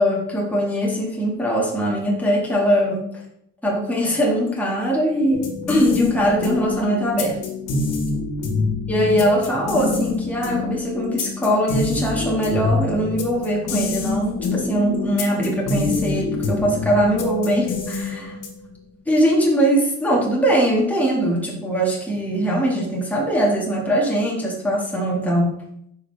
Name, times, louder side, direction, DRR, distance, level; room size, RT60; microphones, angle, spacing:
voice 1, 0.0-3.0 3.6-7.4 8.9-18.4 19.1-25.5, equal, 5° left, -4 dB, 2.0 m, -21 dB
sound 1, 5.3-18.8, left 3 dB, 85° left, 1.5 m, -26 dB
6.8 x 5.4 x 3.5 m, 0.74 s
cardioid pair, 90°, 30 cm